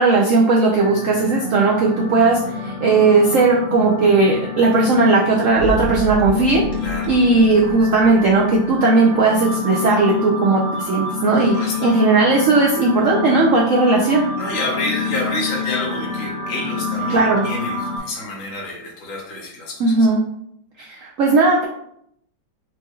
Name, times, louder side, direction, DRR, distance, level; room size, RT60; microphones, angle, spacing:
voice 1, 0.0-6.6 7.1-14.3 17.1-17.5 19.8-20.2 20.8-21.6, right 3 dB, 85° right, -2 dB, 0.7 m, -16 dB
sound 1, 0.8-18.0, left 4 dB, 25° left, 1.7 m, -27 dB
sound 2, 5.5-8.5, right 2 dB, 65° left, 1.3 m, -30 dB
voice 2, 6.8-7.1 11.5-11.9 14.4-19.7, left 2 dB, 45° left, -3 dB, 1.4 m, -28 dB
4.4 x 3.4 x 3.1 m, 0.72 s
omnidirectional pair, 2.1 m